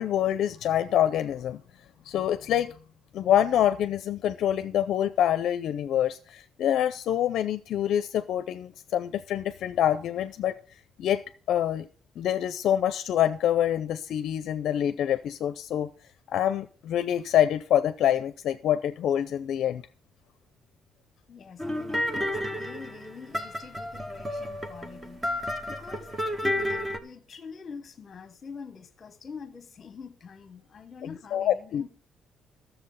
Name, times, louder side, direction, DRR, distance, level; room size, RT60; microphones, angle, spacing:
voice 1, 0.0-1.6 2.1-2.7 3.1-10.6 11.0-11.2 11.5-11.9 12.2-15.9 16.3-19.8 31.0-31.8, left 10 dB, 60° left, 0.5 m, -26 dB
voice 2, 21.3-26.1 26.4-31.9, left 5 dB, 30° left, 1.2 m, -45 dB
sound 1, 21.6-27.0, left 1 dB, 10° right, 0.9 m, -31 dB
13.0 x 7.0 x 5.6 m
cardioid pair, 170°, 0 cm